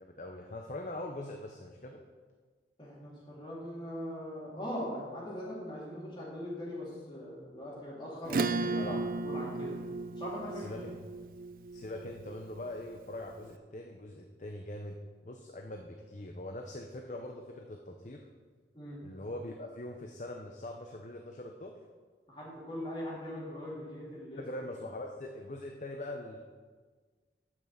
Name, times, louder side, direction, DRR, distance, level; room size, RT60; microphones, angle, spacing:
voice 1, 0.0-2.0 8.7-9.0 10.5-11.0 11.7-15.0 15.2-18.2 19.0-21.7 24.4-26.4, left 1 dB, 45° left, 2 dB, 0.7 m, -42 dB
voice 2, 2.8-9.0 9.2-9.7 10.2-10.7 18.7-19.0 22.3-24.4, equal, 30° left, -6 dB, 3.2 m, -41 dB
Acoustic guitar / Strum, 8.3-13.2, right 3 dB, 55° right, 0.4 m, -35 dB
9.1 x 6.1 x 7.3 m, 1.5 s
head